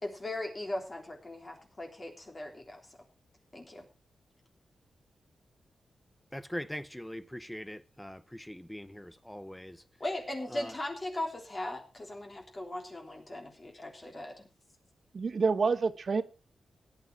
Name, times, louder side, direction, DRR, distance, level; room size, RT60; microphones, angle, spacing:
voice 1, 0.0-2.8 3.5-3.8 10.0-14.5, left 1 dB, 30° left, 3.4 m, -38 dB
voice 2, 6.3-9.8 10.5-10.8, equal, 5° left, 0.8 m, -42 dB
voice 3, 15.1-16.2, right 4 dB, 55° right, 1.1 m, -27 dB
17.0 x 9.7 x 4.7 m
wide cardioid pair, 105°, 0 cm